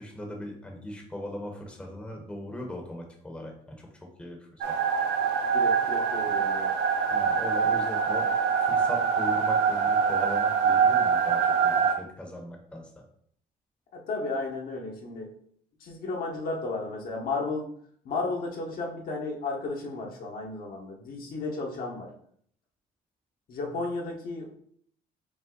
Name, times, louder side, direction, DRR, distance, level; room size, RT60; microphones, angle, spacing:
voice 1, 0.0-4.8 7.1-8.3 8.6-13.0, left 1 dB, 5° left, 1 dB, 0.8 m, -39 dB
sound 1, 4.6-11.9, right 6 dB, 85° right, 0.5 m, -24 dB
voice 2, 5.5-6.7 13.9-15.3 15.8-17.7 18.0-22.1 23.5-24.5, left 3 dB, 60° left, 0 dB, 1.0 m, -33 dB
5.2 x 2.1 x 3.7 m, 0.63 s
cardioid pair, 110°, 17 cm